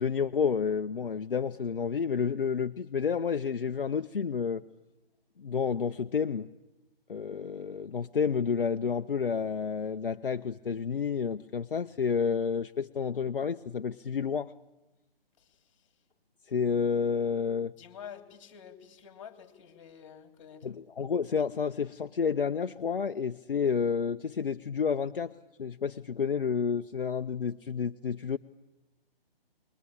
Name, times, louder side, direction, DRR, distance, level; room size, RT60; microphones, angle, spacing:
voice 1, 0.0-4.6 5.4-6.5 7.1-14.5 16.5-17.7 20.6-25.3 25.6-28.4, left 6 dB, 65° left, 8 dB, 0.9 m, -30 dB
voice 2, 17.8-20.7, left 8 dB, 30° left, 6 dB, 3.1 m, -48 dB
28.5 x 22.5 x 8.6 m, 1.1 s
figure-of-eight pair, 150°, 30 cm